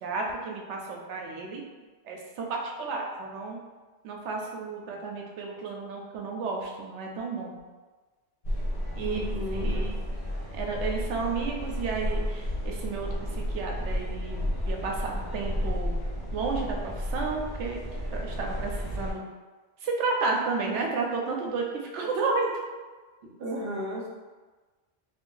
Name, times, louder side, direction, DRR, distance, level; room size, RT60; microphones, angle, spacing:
voice 1, 0.0-1.6 2.0-3.6 4.0-7.6 9.0-9.2 9.5-10.0 10.5-16.0 16.3-17.8 18.1-19.2 19.8-21.7 21.9-22.5, right 4 dB, 85° right, 0 dB, 0.9 m, -32 dB
sound 1, 8.4-19.1, equal, 65° left, 1.0 m, -32 dB
voice 2, 9.0-9.9 23.2-24.1, equal, 60° right, -3 dB, 0.9 m, -34 dB
2.5 x 2.3 x 3.8 m, 1.3 s
omnidirectional pair, 1.2 m